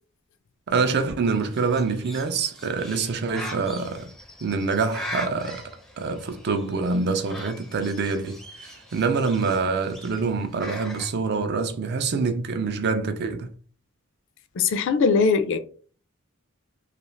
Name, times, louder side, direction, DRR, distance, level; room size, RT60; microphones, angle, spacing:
voice 1, 0.7-4.1 4.4-5.6 6.0-13.5, right 4 dB, 50° right, 0.4 m, -26 dB
Bird, 1.2-11.1, left 1 dB, ahead, 0.5 m, -41 dB
voice 2, 14.6-15.6, left 5 dB, 60° left, 0.4 m, -20 dB
2.4 x 2.4 x 3.0 m
head